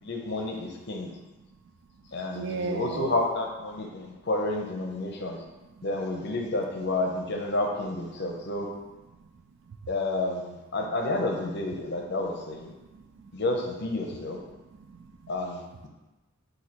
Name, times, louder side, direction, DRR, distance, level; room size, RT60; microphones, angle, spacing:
voice 1, 0.0-1.1 2.1-5.4 5.8-8.7 9.9-12.7 13.3-14.4 15.3-15.9, left 2 dB, 50° left, 1 dB, 0.6 m, -30 dB
voice 2, 2.3-3.1 9.2-9.3 9.7-9.8 12.8-13.3 14.7-15.3, right 4 dB, 55° right, 7 dB, 0.3 m, -36 dB
4.2 x 2.7 x 4.3 m, 1.1 s
head